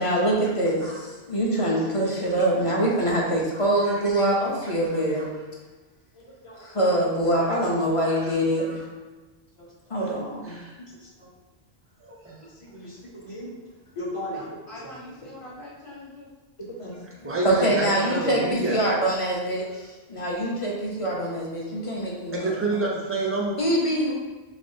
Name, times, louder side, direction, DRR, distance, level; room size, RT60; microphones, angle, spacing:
voice 1, 0.0-5.3 6.2-8.8 9.9-10.6 12.7-13.5 14.0-14.5 16.7-22.8 23.6-24.1, right 1 dB, 35° left, -3 dB, 0.6 m, -25 dB
voice 2, 8.1-8.8 10.0-10.1 10.4-10.8 12.0-12.5 17.0-18.8 22.3-23.6, right 3 dB, 20° right, -2 dB, 0.3 m, -30 dB
voice 3, 14.2-16.3, left 1 dB, 55° left, -11 dB, 1.2 m, -43 dB
3.4 x 3.3 x 2.6 m, 1.2 s
omnidirectional pair, 1.1 m